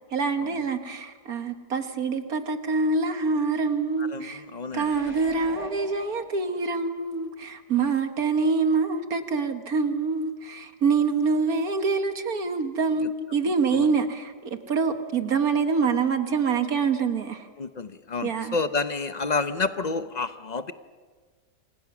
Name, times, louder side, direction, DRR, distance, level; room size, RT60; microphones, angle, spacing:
voice 1, 0.1-4.4 4.7-17.5 18.2-18.6, right 4 dB, 60° right, 8 dB, 1.8 m, -25 dB
voice 2, 4.0-5.2 13.0-13.1 13.7-13.9 17.6-20.7, left 4 dB, 50° left, 11 dB, 0.5 m, -30 dB
sound 1, 4.7-6.8 7.3-7.4, equal, 5° right, 2.8 m, -42 dB
28.5 x 24.5 x 6.0 m, 1.5 s
omnidirectional pair, 1.8 m